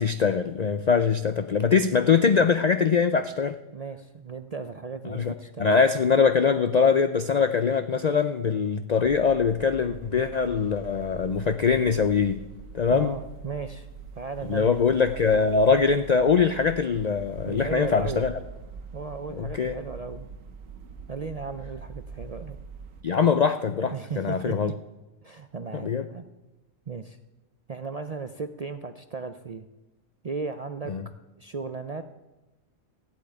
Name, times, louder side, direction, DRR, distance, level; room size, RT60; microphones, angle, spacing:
voice 1, 0.0-3.6 5.0-5.3 5.6-12.4 12.7-13.1 14.5-18.3 19.4-19.7 23.0-24.7 25.7-26.1 30.9-31.0, left 5 dB, 60° left, 10 dB, 0.4 m, -22 dB
voice 2, 3.7-5.8 12.9-13.9 14.2-14.8 17.5-18.2 18.9-20.3 21.1-22.6 23.9-24.7 25.2-26.3 26.9-27.2 27.7-29.7 30.2-30.9 31.4-32.0, right 4 dB, 50° right, 8 dB, 0.4 m, -36 dB
sound 1, 9.0-23.0, right 5 dB, 90° right, 1.4 m, -43 dB
14.0 x 8.4 x 9.0 m, 1.1 s
omnidirectional pair, 1.4 m